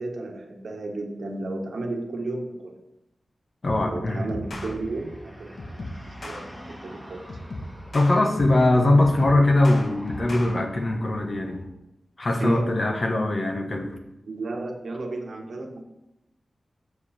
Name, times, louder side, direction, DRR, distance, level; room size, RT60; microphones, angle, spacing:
voice 1, 0.0-2.8 3.8-7.3 12.4-13.0 14.2-15.8, right 2 dB, 75° right, 2 dB, 1.4 m, -33 dB
sound 1, 3.6-3.9 4.3-4.7 5.6-6.4 7.3-8.7 9.0-10.5, left 1 dB, 55° left, 1.4 m, -36 dB
voice 2, 3.6-4.2 7.9-11.7 12.2-13.9, left 2 dB, 40° left, 3 dB, 1.3 m, -21 dB
sound 2, 4.4-11.6, equal, 5° left, 1.7 m, -44 dB
7.9 x 7.5 x 4.4 m, 0.89 s
wide cardioid pair, 135°, 0 cm